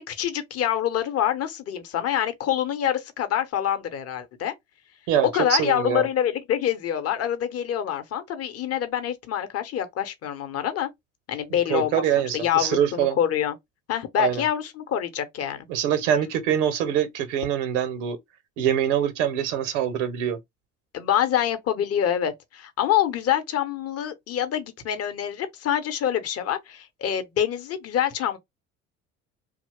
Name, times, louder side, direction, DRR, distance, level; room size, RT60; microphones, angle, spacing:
voice 1, 0.0-4.5 5.3-10.9 11.3-12.0 12.3-13.6 13.9-15.7 20.9-28.4, left 10 dB, 40° left, 0.8 m, -26 dB
voice 2, 5.1-6.1 11.7-13.2 14.2-14.4 15.7-18.2 18.6-20.4, right 10 dB, 80° right, 0.7 m, -24 dB
2.8 x 2.0 x 3.1 m
hypercardioid pair, 65°, 36 cm